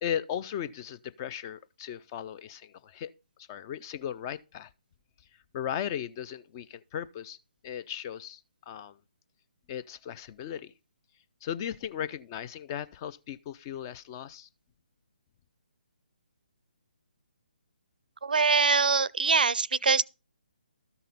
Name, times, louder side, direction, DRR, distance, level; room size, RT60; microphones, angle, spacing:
voice 1, 0.0-3.1 3.5-4.7 5.5-7.4 7.6-8.4 8.7-9.0 9.7-10.7 11.4-14.5, left 9 dB, 25° left, 0.4 m, -36 dB
voice 2, 18.2-20.0, right 5 dB, 60° right, 0.5 m, -23 dB
13.0 x 5.6 x 5.3 m
figure-of-eight pair, 140°, 5 cm